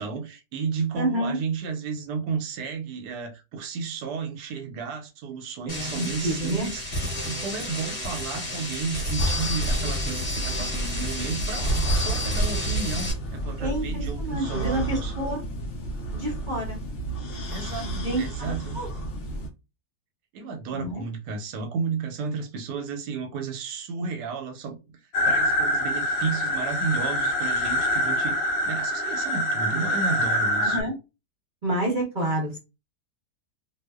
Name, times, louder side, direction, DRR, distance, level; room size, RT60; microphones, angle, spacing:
voice 1, 0.0-6.8 7.2-15.1 17.5-18.8 20.3-24.8 25.2-30.8, right 5 dB, 80° right, 1.2 m, -33 dB
voice 2, 0.9-1.4 5.7-6.7 13.6-15.4 16.1-16.8 17.8-18.9 20.7-21.0 30.6-30.9 31.6-32.6, right 1 dB, 45° right, 0.6 m, -29 dB
sound 1, 5.7-13.1, equal, 25° left, 1.1 m, -29 dB
sound 2, 9.2-19.5, right 2 dB, 60° left, 0.7 m, -32 dB
sound 3, 25.1-30.8, left 1 dB, 75° left, 1.1 m, -25 dB
2.8 x 2.0 x 2.2 m
omnidirectional pair, 1.8 m